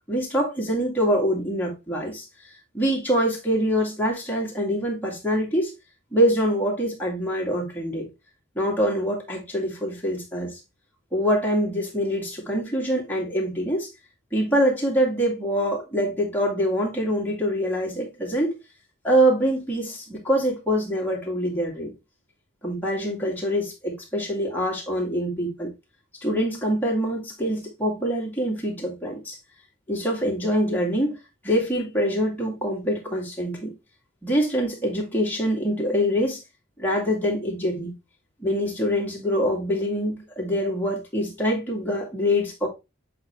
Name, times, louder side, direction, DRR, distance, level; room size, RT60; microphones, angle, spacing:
voice 1, 0.1-2.2 2.7-5.7 6.1-8.1 8.6-10.6 11.1-13.9 14.3-18.5 19.0-21.9 22.6-25.7 26.2-29.4 29.9-31.2 31.4-33.7 34.2-36.4 36.8-38.0 38.4-42.7, equal, 10° left, 2.2 m, -24 dB
8.2 x 4.0 x 3.2 m
head